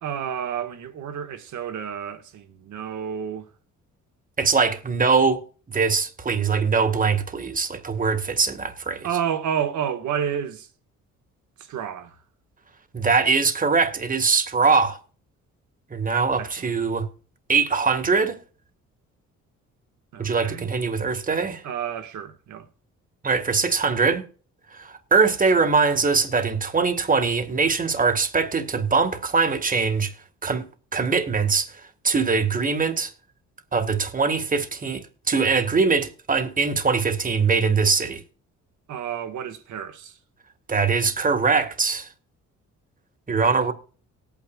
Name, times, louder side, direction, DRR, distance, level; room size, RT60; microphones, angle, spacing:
voice 1, 0.0-3.5 9.0-10.7 11.6-12.2 16.4-16.7 20.1-20.7 21.6-22.7 38.9-40.2, right 8 dB, 75° right, 1.7 m, -30 dB
voice 2, 4.4-5.4 5.7-9.1 12.9-15.0 15.9-17.1 17.5-18.4 20.2-21.6 23.2-24.2 24.7-30.1 30.4-30.6 30.9-31.7 32.0-33.1 33.7-38.2 40.7-42.1 43.3-43.7, right 4 dB, 30° right, 1.7 m, -22 dB
18.5 x 9.1 x 2.4 m
cardioid pair, 90°, 30 cm